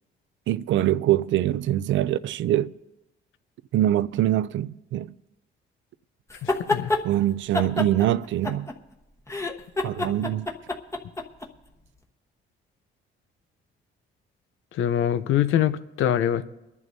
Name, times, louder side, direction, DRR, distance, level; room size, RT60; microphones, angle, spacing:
voice 1, 0.5-2.7 3.7-5.1 7.0-8.7 9.8-10.5, right 13 dB, 70° right, 0.4 m, -24 dB
sound 1, 6.3-7.0 7.5-8.9 9.3-11.5, left 3 dB, 15° left, 1.1 m, -27 dB
voice 2, 6.4-6.9 14.7-16.4, left 10 dB, 85° left, 0.7 m, -24 dB
28.5 x 11.0 x 2.7 m
cardioid pair, 90°, 20 cm